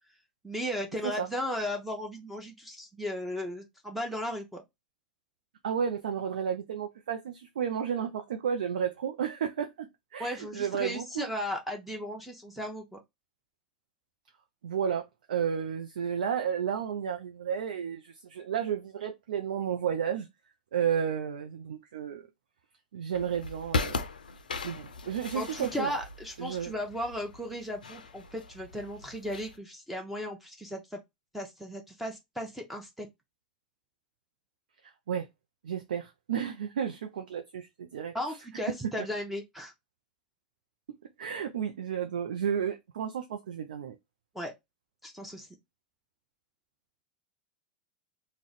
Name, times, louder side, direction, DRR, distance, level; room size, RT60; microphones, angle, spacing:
voice 1, 0.4-4.6 10.2-13.0 25.3-31.0 31.3-33.1 38.1-39.7 44.3-44.5 45.0-45.5, equal, 5° right, 0.7 m, -36 dB
voice 2, 5.6-11.3 14.6-15.0 15.3-20.3 20.7-22.3 22.9-24.0 24.6-25.9 26.4-26.7 35.1-35.3 35.6-38.1 41.2-44.0, right 8 dB, 75° right, 0.4 m, -32 dB
sound 1, 23.1-29.6, left 3 dB, 85° left, 0.4 m, -38 dB
2.4 x 2.1 x 3.9 m
hypercardioid pair, 90°, 4 cm